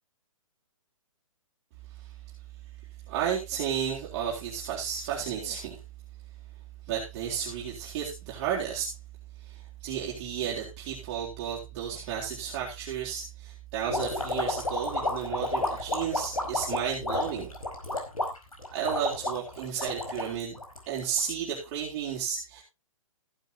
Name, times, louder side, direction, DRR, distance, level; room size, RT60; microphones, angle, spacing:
voice 1, 3.1-5.8 6.9-9.0 9.4-17.5 18.7-20.5 20.9-22.6, right 8 dB, 30° right, -4 dB, 3.7 m, -33 dB
sound 1, 13.9-21.2, left 2 dB, 90° left, 4.8 m, -31 dB
15.0 x 10.5 x 2.9 m, 0.26 s
figure-of-eight pair, 130°, 18 cm